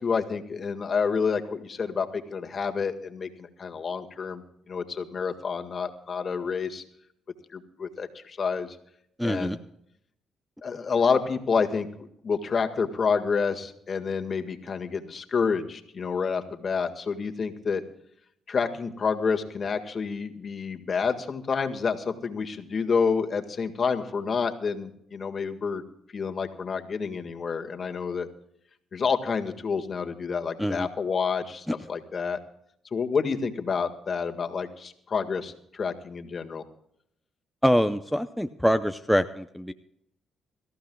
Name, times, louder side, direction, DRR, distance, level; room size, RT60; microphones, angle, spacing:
voice 1, 0.0-6.8 7.5-8.8 9.2-9.6 10.6-11.9 12.2-17.8 18.5-25.8 26.1-28.3 28.9-32.4 32.9-36.6, left 5 dB, 45° left, 6 dB, 1.8 m, -28 dB
voice 2, 9.2-9.6 30.6-30.9 37.6-39.7, equal, ahead, 7 dB, 0.6 m, -24 dB
24.5 x 14.5 x 2.3 m, 0.73 s
cardioid pair, 90°, 0 cm